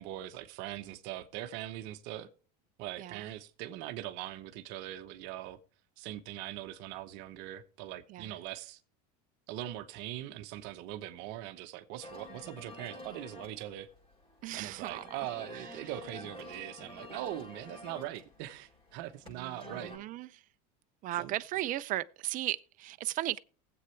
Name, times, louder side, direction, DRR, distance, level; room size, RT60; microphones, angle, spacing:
voice 1, 0.0-2.3 2.8-5.6 6.0-8.8 9.5-13.9 14.6-19.9 21.2-21.3, right 13 dB, 60° right, 1.0 m, -41 dB
sound 1, 12.0-20.0, left 2 dB, 25° left, 6.7 m, -49 dB
voice 2, 14.4-15.0 15.5-15.7 19.3-20.4 21.0-23.4, right 15 dB, 40° right, 0.6 m, -36 dB
19.5 x 8.0 x 3.3 m
supercardioid pair, 115°, 20 cm